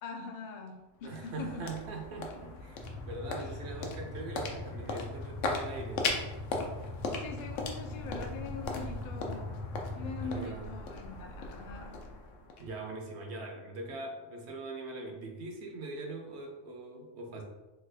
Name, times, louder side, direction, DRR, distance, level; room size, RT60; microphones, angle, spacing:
voice 1, 0.0-1.7 3.3-4.1 7.0-9.6 9.9-12.0, left 4 dB, 65° left, 3 dB, 0.4 m, -43 dB
sound 1, 0.7-13.1, left 3 dB, 85° left, 0.9 m, -39 dB
voice 2, 1.0-6.1 10.2-10.7 12.6-17.4, right 2 dB, 65° right, 1 dB, 0.8 m, -42 dB
sound 2, 2.8-10.4, left 2 dB, 20° right, 0.4 m, -42 dB
3.3 x 2.3 x 3.2 m, 1.1 s
omnidirectional pair, 1.3 m